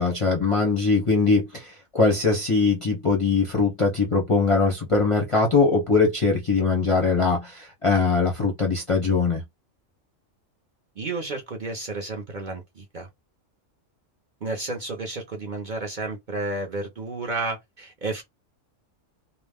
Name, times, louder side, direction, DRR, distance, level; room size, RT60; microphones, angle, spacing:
voice 1, 0.0-9.4, left 4 dB, 35° left, 0.6 m, -21 dB
voice 2, 11.0-13.1 14.4-18.2, right 3 dB, 45° right, 0.7 m, -31 dB
2.5 x 2.1 x 3.4 m
omnidirectional pair, 1.4 m